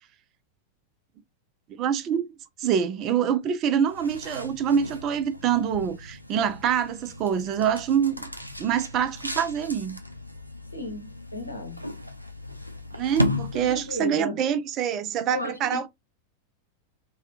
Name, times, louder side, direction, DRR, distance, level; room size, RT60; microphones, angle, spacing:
voice 1, 1.8-2.3 2.6-8.3 8.6-10.0 13.0-15.9, right 8 dB, 35° right, 0.5 m, -25 dB
sound 1, 3.8-14.1, left 1 dB, 90° right, 0.5 m, -35 dB
voice 2, 10.7-11.8 13.5-14.4 15.3-15.9, left 1 dB, 85° left, 0.9 m, -34 dB
3.4 x 2.3 x 2.8 m
figure-of-eight pair, 90°, 0 cm